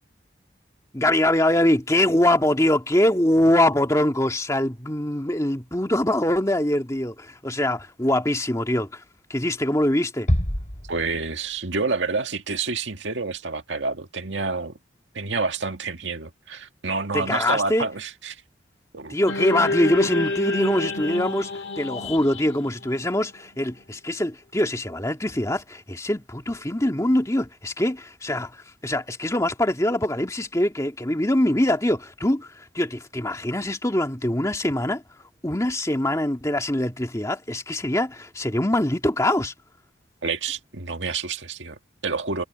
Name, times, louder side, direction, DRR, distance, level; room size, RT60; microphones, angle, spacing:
voice 1, 0.9-9.0 9.3-10.3 17.1-17.9 19.1-35.0 35.4-39.5, left 1 dB, 15° left, 2.0 m, -23 dB
Bass drum, 10.3-11.7, equal, 40° left, 4.3 m, -26 dB
voice 2, 10.9-14.8 15.1-18.4 18.9-19.2 40.2-42.4, right 4 dB, 75° right, 1.9 m, -28 dB
sound 1, 19.3-23.6, left 2 dB, 70° left, 2.2 m, -28 dB
head